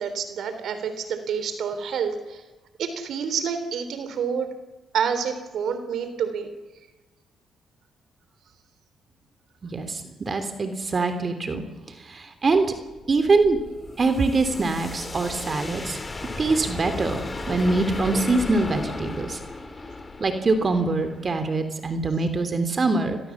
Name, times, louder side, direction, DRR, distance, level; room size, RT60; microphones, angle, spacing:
voice 1, 0.0-2.4 2.8-4.5 4.9-6.5, right 7 dB, 70° right, 10 dB, 3.5 m, -28 dB
voice 2, 9.6-11.6 12.1-12.7 13.1-13.6 14.0-16.0 16.4-19.4 20.2-23.2, right 3 dB, 40° right, 9 dB, 3.1 m, -23 dB
sound 1, 12.8-21.7, left 2 dB, 30° left, 3.7 m, -35 dB
29.0 x 22.0 x 7.3 m, 1.2 s
supercardioid pair, 65°, 0 cm